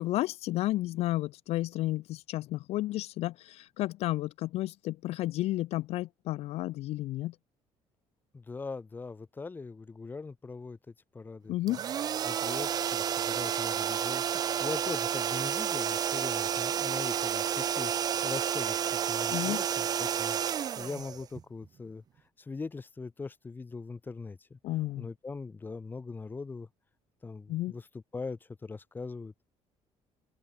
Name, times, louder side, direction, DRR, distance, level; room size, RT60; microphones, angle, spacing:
voice 1, 0.0-7.4 11.5-11.8 19.3-19.6 24.6-25.1 27.5-27.7, left 16 dB, 65° left, 1.0 m, -32 dB
voice 2, 8.3-11.7 12.2-22.0 22.4-24.6 24.9-26.7 27.2-29.3, left 4 dB, 15° left, 5.0 m, -41 dB
sound 1, 11.7-21.6, right 9 dB, 35° right, 0.8 m, -31 dB
open air
cardioid pair, 160°, 11 cm